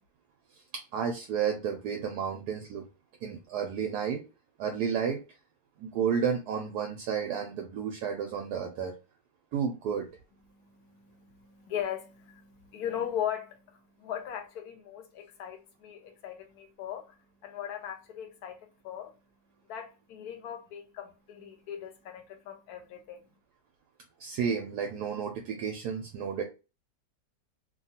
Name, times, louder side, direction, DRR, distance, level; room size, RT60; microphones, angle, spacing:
voice 1, 0.9-2.8 3.2-4.2 4.6-5.2 5.8-8.9 9.5-10.1 24.2-26.4, right 7 dB, 75° right, 1.0 m, -31 dB
voice 2, 10.4-19.2 19.7-23.2, left 9 dB, 70° left, 1.0 m, -39 dB
3.0 x 2.3 x 2.8 m
omnidirectional pair, 1.9 m